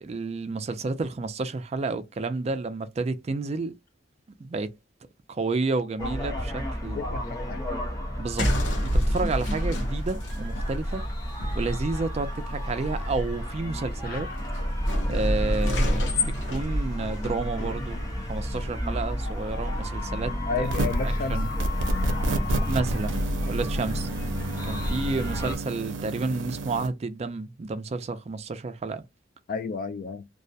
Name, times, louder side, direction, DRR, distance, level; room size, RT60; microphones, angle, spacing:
voice 1, 0.0-3.8 4.4-4.7 5.3-7.0 8.2-8.5 8.8-11.1 11.6-14.3 15.1-18.0 18.3-20.7 21.0-21.5 22.7-24.1 24.7-29.0, right 3 dB, 35° right, 0.3 m, -31 dB
sound 1, 6.0-25.6, left 1 dB, 20° left, 0.6 m, -32 dB
voice 2, 6.9-7.6 9.4-9.5 14.0-14.3 20.5-21.7 29.5-30.3, left 4 dB, 50° left, 0.3 m, -32 dB
sound 2, 8.4-22.1, equal, 85° left, 0.8 m, -30 dB
sound 3, 20.6-21.1 21.6-26.9, right 2 dB, 90° right, 0.5 m, -30 dB
2.3 x 2.1 x 2.6 m
head